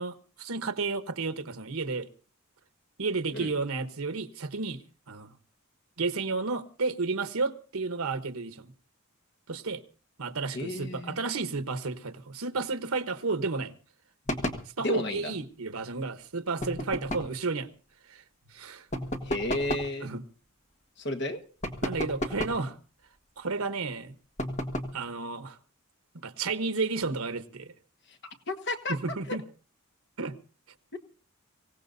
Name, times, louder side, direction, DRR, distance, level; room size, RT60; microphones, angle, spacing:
voice 1, 0.0-2.1 3.0-4.8 5.1-5.3 6.0-8.7 9.5-9.8 10.2-13.7 14.8-17.7 18.1-18.2 18.5-18.9 20.0-20.2 21.8-22.8 23.4-24.1 24.9-25.6 26.1-27.7 28.9-29.4 30.2-30.3, right 3 dB, 90° right, 1.1 m, -32 dB
voice 2, 10.5-11.2 14.8-15.3 19.2-20.1 21.0-21.4 28.1-28.2 28.5-29.0 30.9-31.0, left 1 dB, 55° left, 1.5 m, -32 dB
sound 1, 14.3-14.7 16.6-17.4 18.9-19.9 21.6-22.7 24.4-25.0, equal, 35° left, 1.5 m, -33 dB
24.5 x 17.0 x 2.7 m
head